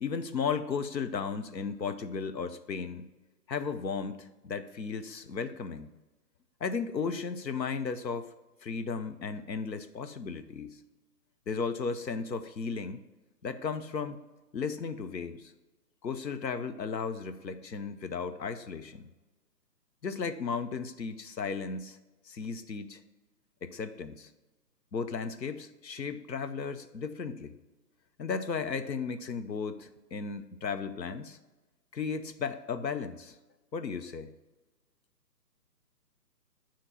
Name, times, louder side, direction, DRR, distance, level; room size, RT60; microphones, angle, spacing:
voice 1, 0.0-3.1 3.5-5.9 6.6-8.3 8.6-10.8 11.5-13.0 13.4-14.2 14.5-15.5 16.0-19.1 20.0-22.0 22.3-23.0 23.6-24.3 24.9-27.6 28.2-31.4 31.9-33.4 33.7-34.3, left 5 dB, 85° left, 10 dB, 0.7 m, -35 dB
7.3 x 2.9 x 5.6 m, 1.1 s
figure-of-eight pair, 140°, 50 cm